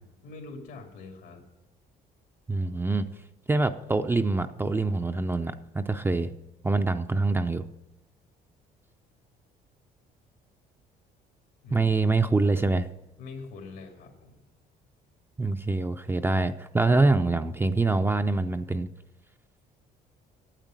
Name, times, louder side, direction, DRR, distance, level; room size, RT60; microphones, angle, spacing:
voice 1, 0.2-1.4 11.6-11.9 13.2-14.4, left 3 dB, 85° left, 1 dB, 2.5 m, -43 dB
voice 2, 2.5-3.1 3.5-6.3 6.6-7.6 11.7-12.9 15.4-18.9, right 3 dB, 15° right, 7 dB, 0.5 m, -25 dB
9.1 x 8.2 x 7.5 m, 1.0 s
cardioid pair, 110°, 17 cm